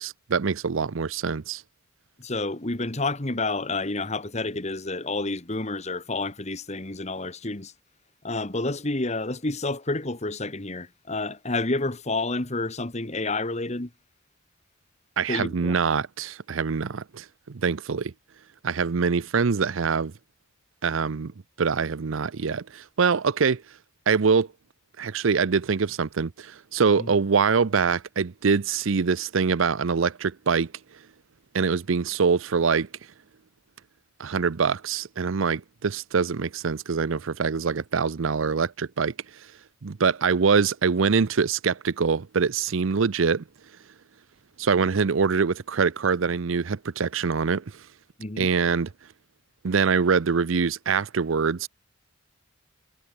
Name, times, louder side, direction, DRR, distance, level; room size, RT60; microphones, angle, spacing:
voice 1, 0.0-1.6 15.2-18.1 18.6-20.1 20.8-21.3 21.6-23.6 24.1-24.5 25.0-30.7 31.5-32.9 34.2-39.1 39.8-43.4 44.6-47.6 48.4-48.9 49.6-51.7, right 5 dB, 75° right, 0.6 m, -24 dB
voice 2, 2.2-7.7 8.2-13.9 15.3-15.7 27.0-27.1 48.2-48.5, left 2 dB, 35° left, 1.6 m, -29 dB
head